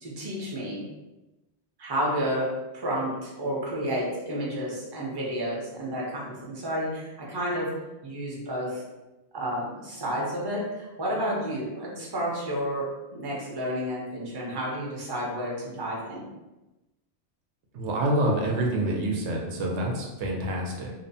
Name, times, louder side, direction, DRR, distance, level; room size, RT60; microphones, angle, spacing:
voice 1, 0.0-0.8 1.8-2.5 2.7-7.7 8.0-8.8 9.3-16.3, equal, 30° right, -4 dB, 0.5 m, -31 dB
voice 2, 17.7-20.9, right 1 dB, 90° right, -1 dB, 0.9 m, -27 dB
2.7 x 2.1 x 2.6 m, 1.0 s
omnidirectional pair, 1.1 m